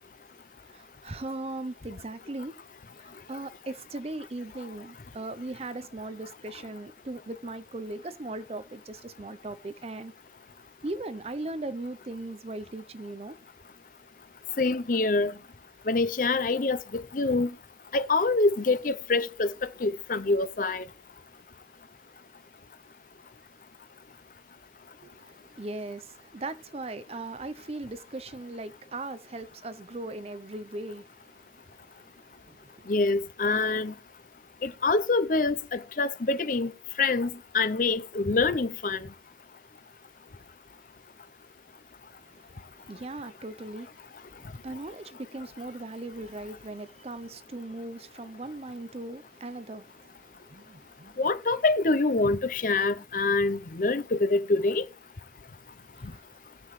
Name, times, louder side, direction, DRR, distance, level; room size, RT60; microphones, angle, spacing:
voice 1, 0.7-2.5 3.3-10.1 10.8-13.4 25.0-25.2 25.6-31.1 32.5-32.8 42.3-42.4 42.9-43.9 44.6-49.9 50.3-51.3 56.1-56.2, right 2 dB, 35° right, 0.6 m, -38 dB
voice 2, 14.6-15.3 15.9-17.5 17.9-19.5 19.8-20.8 32.9-33.9 34.6-36.7 37.0-37.3 37.5-39.0 51.2-54.8, left 3 dB, 50° left, 0.6 m, -25 dB
19.5 x 7.7 x 3.1 m
head